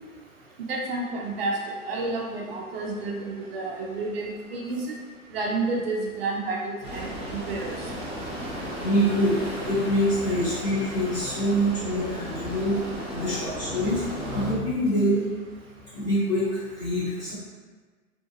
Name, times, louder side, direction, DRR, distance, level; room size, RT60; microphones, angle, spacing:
voice 1, 0.7-1.6 1.9-5.0 5.3-7.7, right 3 dB, 45° right, -1 dB, 0.4 m, -30 dB
sound 1, 6.8-14.5, right 1 dB, 15° right, 0.9 m, -35 dB
voice 2, 8.8-9.3 9.7-12.8 13.1-15.2 15.9-17.3, equal, 25° left, -11 dB, 1.1 m, -25 dB
2.7 x 2.2 x 3.0 m, 1.4 s
figure-of-eight pair, 115°, 44 cm